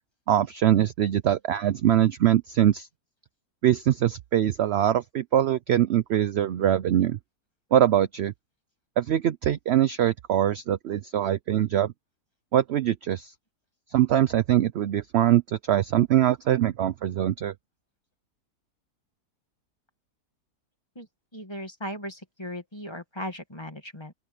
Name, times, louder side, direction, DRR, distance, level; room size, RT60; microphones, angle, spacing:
voice 1, 0.3-2.9 3.6-7.2 7.7-8.3 9.0-11.9 12.5-13.3 13.9-17.5, right 11 dB, 65° right, 0.6 m, -23 dB
voice 2, 21.3-24.1, equal, 15° left, 2.0 m, -37 dB
open air
omnidirectional pair, 1.7 m